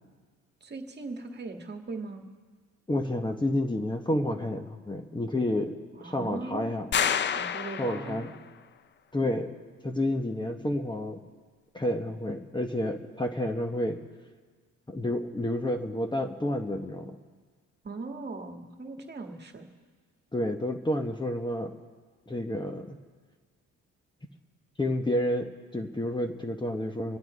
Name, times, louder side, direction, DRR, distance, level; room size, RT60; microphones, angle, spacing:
voice 1, 0.6-2.3 5.9-6.7 7.3-8.4 17.8-19.7, right 3 dB, 35° right, 4 dB, 1.7 m, -39 dB
voice 2, 2.9-5.8 6.0-6.9 7.8-8.3 9.1-9.5 9.8-11.2 11.7-14.0 14.9-17.2 20.3-21.7 22.3-23.0 24.8-27.2, left 1 dB, 15° left, 4 dB, 1.0 m, -30 dB
sound 1, 6.9-8.4, left 8 dB, 40° left, 0.5 m, -29 dB
26.0 x 8.9 x 4.9 m, 1.5 s
cardioid pair, 90°, 30 cm